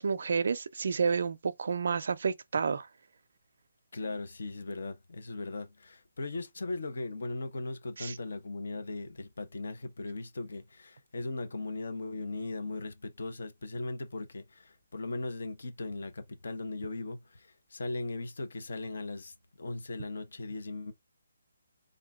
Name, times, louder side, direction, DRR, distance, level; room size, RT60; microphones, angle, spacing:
voice 1, 0.0-2.9 8.0-8.2, right 5 dB, 50° right, 0.5 m, -30 dB
voice 2, 3.9-20.9, left 2 dB, 65° left, 1.2 m, -38 dB
3.7 x 2.6 x 3.6 m
hypercardioid pair, 175°, 0 cm